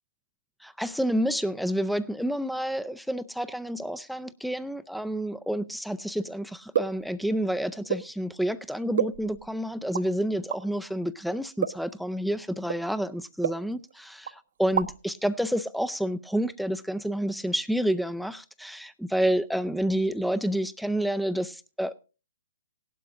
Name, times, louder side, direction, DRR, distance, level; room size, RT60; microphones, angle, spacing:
voice 1, 0.6-21.9, equal, ahead, 0.5 m, -29 dB
sound 1, 6.7-7.1 7.9-8.1 9.0-9.5 9.9-10.1 10.5-10.6 11.6-11.9 12.7-12.9 13.4-14.0 14.3-14.4 14.6-15.1, right 8 dB, 60° right, 0.8 m, -29 dB
17.5 x 12.0 x 2.5 m
figure-of-eight pair, 130°, 0 cm